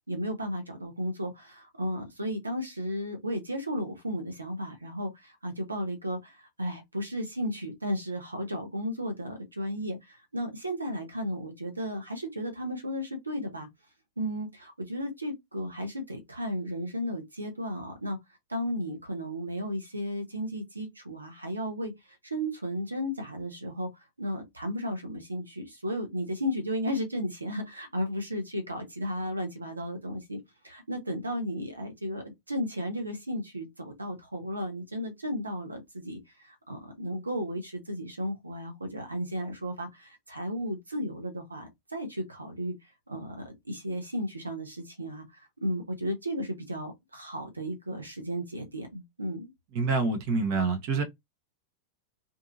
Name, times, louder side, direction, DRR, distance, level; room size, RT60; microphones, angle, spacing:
voice 1, 0.1-13.7 14.2-18.2 18.5-21.9 22.2-30.4 30.6-42.7 43.1-49.5, equal, 80° right, 0.9 m, -34 dB
voice 2, 49.7-51.0, right 4 dB, 45° right, 0.8 m, -26 dB
2.7 x 2.6 x 2.5 m
figure-of-eight pair, 90°, 0 cm